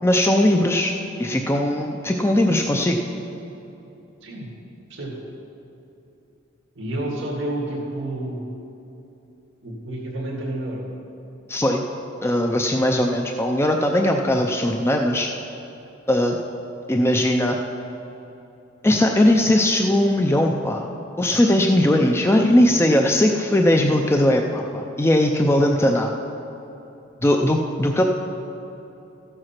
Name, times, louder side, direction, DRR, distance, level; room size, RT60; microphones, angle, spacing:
voice 1, 0.0-3.0 11.5-11.8 12.2-15.3 16.1-16.4 16.9-17.6 18.8-20.9 21.2-26.1 27.2-28.0, left 1 dB, 15° left, 3 dB, 0.4 m, -19 dB
voice 2, 6.8-8.5 9.6-10.9 13.6-13.7 14.1-14.2, right 1 dB, 65° right, -3 dB, 2.0 m, -30 dB
14.0 x 7.8 x 5.8 m, 2.9 s
head